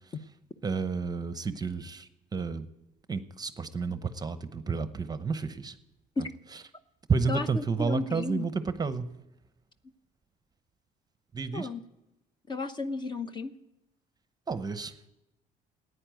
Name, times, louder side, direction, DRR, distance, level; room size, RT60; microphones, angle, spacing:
voice 1, 0.6-2.7 3.1-5.7 7.1-9.1 11.3-11.7 14.5-14.9, right 5 dB, 25° right, 11 dB, 0.9 m, -31 dB
voice 2, 7.3-8.5 11.5-11.8 12.5-13.5, left 3 dB, 25° left, 11 dB, 0.9 m, -33 dB
14.0 x 9.7 x 9.1 m, 0.94 s
cardioid pair, 110°, 17 cm